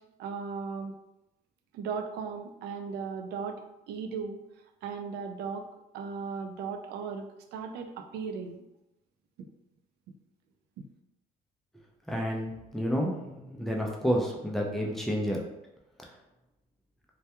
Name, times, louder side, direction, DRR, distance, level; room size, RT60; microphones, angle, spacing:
voice 1, 0.2-0.9 1.7-3.6 3.9-4.4 4.8-5.7 5.9-7.3 7.5-8.6 10.8-10.9, right 5 dB, 75° right, 5 dB, 0.4 m, -36 dB
voice 2, 12.1-15.4, equal, ahead, -1 dB, 0.4 m, -30 dB
2.2 x 2.2 x 2.8 m, 0.93 s
cardioid pair, 110°, 17 cm